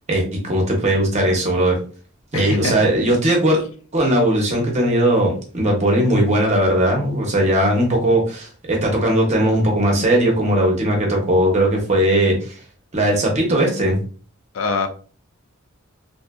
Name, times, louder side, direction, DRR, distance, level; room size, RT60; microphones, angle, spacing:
voice 1, 0.1-1.8 2.3-3.6 3.9-12.5 12.9-14.0, right 1 dB, 35° right, 0 dB, 0.7 m, -18 dB
voice 2, 2.3-2.8 14.5-14.9, left 4 dB, 70° left, 6 dB, 0.4 m, -23 dB
2.6 x 2.4 x 2.2 m, 0.40 s
head